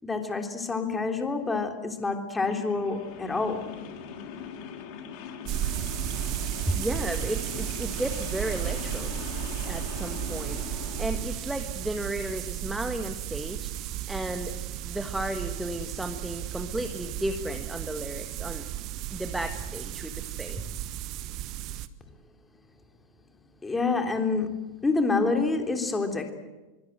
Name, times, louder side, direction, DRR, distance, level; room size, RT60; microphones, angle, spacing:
voice 1, 0.0-3.6 23.6-26.3, left 3 dB, 10° left, 4 dB, 3.4 m, -27 dB
sound 1, 2.4-11.2, left 7 dB, 45° left, 3.4 m, -41 dB
sound 2, 5.4-21.9, right 13 dB, 40° right, 1.3 m, -34 dB
voice 2, 6.7-9.1 9.6-14.5 14.8-18.7 19.1-20.6, right 1 dB, 5° right, 6 dB, 1.6 m, -34 dB
24.0 x 24.0 x 7.9 m, 1.1 s
figure-of-eight pair, 90°, 0 cm